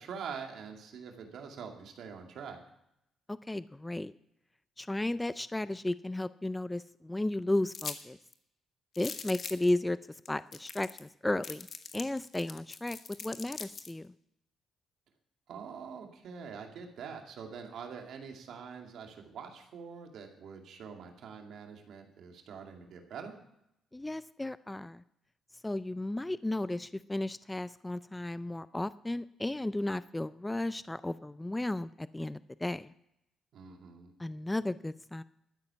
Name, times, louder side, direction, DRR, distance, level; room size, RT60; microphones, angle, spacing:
voice 1, 0.0-2.6 15.5-23.4 33.5-34.1, right 6 dB, 70° right, 3 dB, 2.4 m, -45 dB
voice 2, 3.3-4.1 4.8-8.2 9.0-10.0 10.3-11.7 11.9-14.1 23.9-25.0 25.6-32.9 34.2-35.2, left 1 dB, 10° left, 16 dB, 0.4 m, -34 dB
sound 1, 7.7-8.0 8.3-8.4 8.9-9.7 10.3-10.4 10.5-11.1 11.4-13.9, left 6 dB, 50° left, 1.4 m, -42 dB
13.0 x 9.7 x 7.0 m, 0.81 s
cardioid pair, 90°, 0 cm